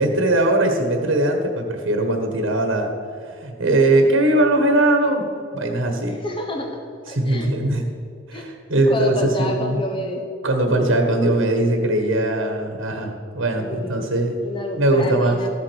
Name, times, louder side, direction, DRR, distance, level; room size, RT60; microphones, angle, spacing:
voice 1, 0.0-2.9 3.2-5.3 5.5-6.2 7.1-7.8 8.3-9.8 10.4-14.4 14.8-15.4, right 1 dB, 80° right, 4 dB, 1.4 m, -20 dB
voice 2, 6.1-6.7 7.1-7.5 8.3-8.5 8.9-10.2 13.6-14.1 14.4-15.5, left 1 dB, 25° left, 2 dB, 1.1 m, -28 dB
14.0 x 7.5 x 6.4 m, 2.4 s
head